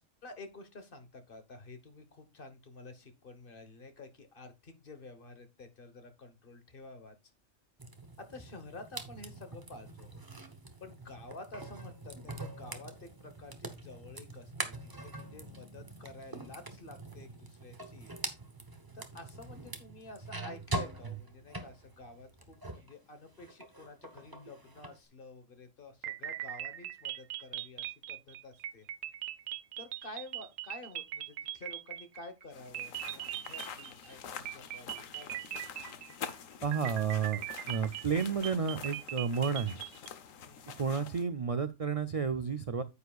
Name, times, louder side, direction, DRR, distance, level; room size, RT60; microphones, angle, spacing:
voice 1, 0.0-7.1 8.2-10.2 10.8-14.7 15.0-18.1 18.9-28.9 29.8-35.4 35.8-36.0 40.4-40.6, left 2 dB, 45° left, 9 dB, 1.3 m, -50 dB
sound 1, 7.8-22.9 23.3-25.0, right 2 dB, 20° right, 0.9 m, -44 dB
sound 2, 26.0-32.4 32.7-34.1 34.5-36.3 36.7-40.1, right 13 dB, 80° right, 1.0 m, -40 dB
sound 3, 32.5-41.2, left 7 dB, 80° left, 1.3 m, -47 dB
voice 2, 36.6-39.8 40.8-42.8, right 6 dB, 60° right, 11 dB, 0.3 m, -31 dB
9.4 x 8.6 x 2.4 m, 0.23 s
omnidirectional pair, 1.3 m